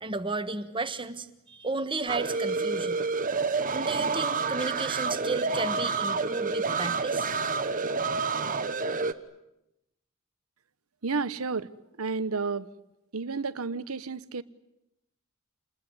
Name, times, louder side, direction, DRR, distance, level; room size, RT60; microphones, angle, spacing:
voice 1, 0.0-3.0 3.7-7.3, right 3 dB, 25° right, 10 dB, 1.5 m, -33 dB
sound 1, 2.1-9.1, right 4 dB, 40° right, 1.2 m, -29 dB
voice 2, 11.0-11.7 12.0-12.7 13.1-14.4, right 4 dB, 80° right, 15 dB, 1.0 m, -31 dB
28.0 x 20.5 x 9.9 m, 0.89 s
head